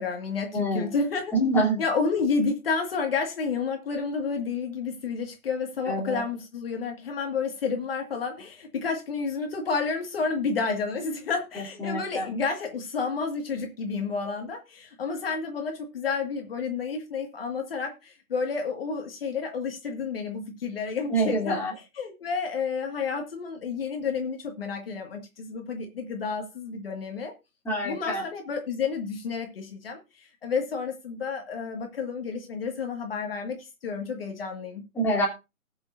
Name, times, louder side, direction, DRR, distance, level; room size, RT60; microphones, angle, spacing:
voice 1, 0.0-1.3 1.8-27.3 27.8-34.8, left 5 dB, 40° left, 3 dB, 2.0 m, -30 dB
voice 2, 0.5-0.9 1.3-1.8 5.9-6.2 11.5-12.3 21.1-21.7 27.6-28.2 34.9-35.3, right 1 dB, 5° left, -5 dB, 3.1 m, -26 dB
20.0 x 7.0 x 2.6 m, 0.27 s
figure-of-eight pair, 150°, 43 cm